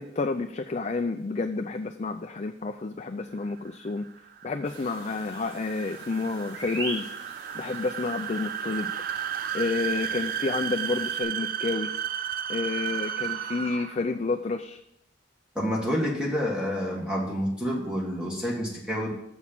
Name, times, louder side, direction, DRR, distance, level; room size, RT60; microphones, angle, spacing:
voice 1, 0.0-4.0 4.4-7.1 7.5-8.9 9.5-11.9 12.5-14.8, left 3 dB, 35° left, 5 dB, 0.5 m, -30 dB
sound 1, 3.4-14.1, right 9 dB, 50° right, 0.4 m, -33 dB
sound 2, 4.6-11.2, right 2 dB, 80° right, 3.8 m, -42 dB
voice 2, 15.6-19.1, equal, 5° right, -4 dB, 1.7 m, -28 dB
7.0 x 6.3 x 7.4 m, 0.78 s
head